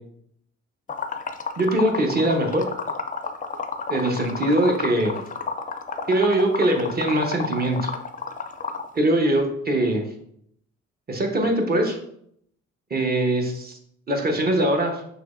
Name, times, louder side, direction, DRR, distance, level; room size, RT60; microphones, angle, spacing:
Liquid, 0.9-8.9, left 5 dB, 25° left, 0.4 m, -30 dB
voice 1, 1.6-2.7 3.9-5.2 6.1-7.9 8.9-10.0 11.1-12.0 12.9-13.8 14.1-15.0, right 1 dB, 30° right, 2 dB, 1.0 m, -22 dB
6.0 x 2.9 x 2.6 m, 0.70 s
cardioid pair, 90°, 30 cm